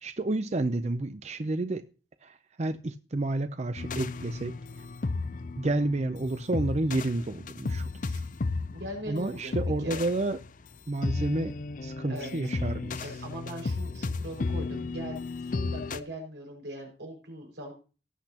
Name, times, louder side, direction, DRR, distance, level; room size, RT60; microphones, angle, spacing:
voice 1, 0.0-1.9 2.2-4.5 5.6-8.2 9.1-10.4 10.9-11.6 11.8-13.1, right 2 dB, 40° right, 0.6 m, -30 dB
sound 1, 3.8-16.0, left 3 dB, 50° left, 0.5 m, -34 dB
voice 2, 8.7-9.5 9.8-10.0 12.1-12.5 13.0-17.7, equal, 90° right, 5.4 m, -40 dB
18.0 x 8.1 x 2.9 m
head